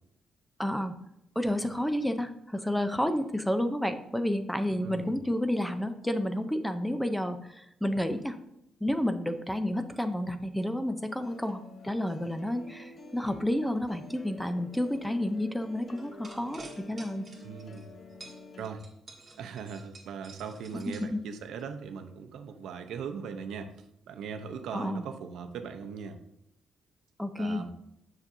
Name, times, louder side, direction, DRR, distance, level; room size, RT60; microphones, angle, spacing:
voice 1, 0.6-1.0 1.4-8.4 8.8-17.3 21.0-21.2 24.7-25.0 27.2-27.6, left 1 dB, 5° left, 9 dB, 0.5 m, -30 dB
voice 2, 4.8-5.2 17.4-18.0 18.6-18.8 19.4-23.7 24.1-26.2 27.4-27.7, right 6 dB, 80° right, 6 dB, 0.7 m, -39 dB
sound 1, 11.2-18.7, left 2 dB, 35° left, 0.8 m, -48 dB
sound 2, 15.9-17.9 18.2-21.6, right 3 dB, 35° right, 2.0 m, -50 dB
7.1 x 5.9 x 2.6 m, 0.80 s
cardioid pair, 90°, 0 cm